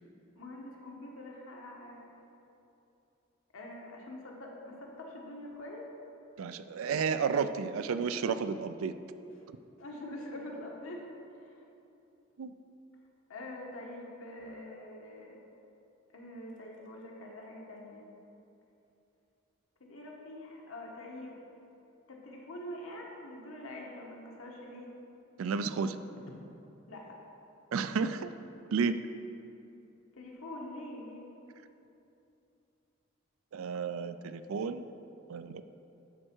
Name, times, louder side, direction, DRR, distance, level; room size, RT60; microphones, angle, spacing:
voice 1, 0.3-2.1 3.5-5.8 9.8-11.0 11.4-11.5 13.3-15.4 16.1-18.1 19.8-21.4 22.1-24.9 26.9-27.2 30.1-31.3, left 1 dB, 80° left, -1 dB, 1.3 m, -45 dB
voice 2, 6.4-8.9 12.4-12.5 25.4-26.0 27.7-28.3 28.7-29.0 33.5-34.8 35.3-35.6, right 5 dB, 80° right, 11 dB, 0.4 m, -32 dB
11.0 x 4.4 x 4.5 m, 2.8 s
head